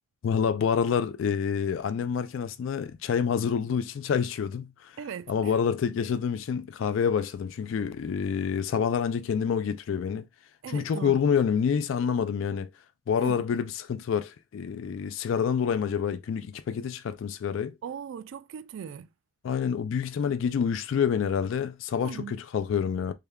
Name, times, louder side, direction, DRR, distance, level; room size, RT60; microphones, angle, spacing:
voice 1, 0.2-5.0 5.3-10.3 10.7-12.7 13.1-17.7 19.4-23.1, left 7 dB, 75° left, 0.3 m, -27 dB
voice 2, 5.0-5.5 10.6-11.2 13.2-13.4 17.8-19.1 22.0-22.4, right 7 dB, 75° right, 0.3 m, -39 dB
3.4 x 2.2 x 3.4 m
head